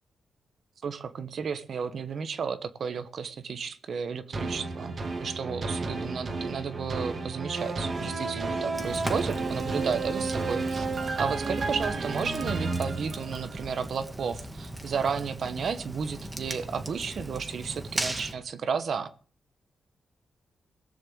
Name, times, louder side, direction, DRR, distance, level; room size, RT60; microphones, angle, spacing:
voice 1, 0.8-10.9 11.2-19.1, right 6 dB, 65° right, 13 dB, 1.3 m, -33 dB
sound 1, 4.3-13.7 14.2-14.3, right 3 dB, 50° right, 2.4 m, -32 dB
Fire, 8.7-18.3, right 1 dB, 15° right, 2.3 m, -38 dB
18.5 x 6.6 x 7.9 m, 0.43 s
cardioid pair, 100°, 0 cm